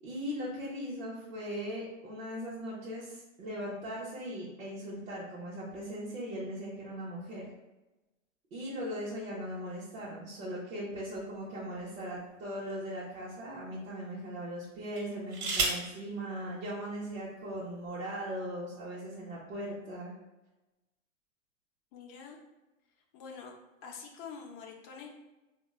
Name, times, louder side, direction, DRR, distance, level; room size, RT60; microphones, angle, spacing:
voice 1, 0.0-7.4 8.5-20.1, equal, 75° right, -5 dB, 0.9 m, -39 dB
sound 1, 11.2-12.4 13.1-13.3 14.9-16.0 17.1-17.2 17.5-17.9, right 3 dB, 55° right, 1.3 m, -34 dB
voice 2, 21.9-22.4 23.1-23.5 23.8-25.1, left 6 dB, 35° left, 1 dB, 0.5 m, -46 dB
3.8 x 2.3 x 2.2 m, 1.0 s
hypercardioid pair, 110°, 40 cm